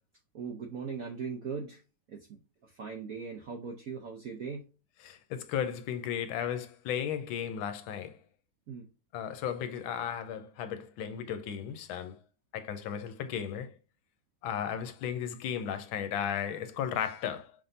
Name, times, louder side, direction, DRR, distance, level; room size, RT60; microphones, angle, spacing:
voice 1, 0.3-1.8 2.1-4.6 8.7-8.9, right 5 dB, 70° right, 0.8 m, -39 dB
voice 2, 5.0-8.2 9.1-12.2 12.5-13.7 14.4-17.5, left 8 dB, 75° left, 1.4 m, -35 dB
5.6 x 3.6 x 2.6 m
omnidirectional pair, 2.3 m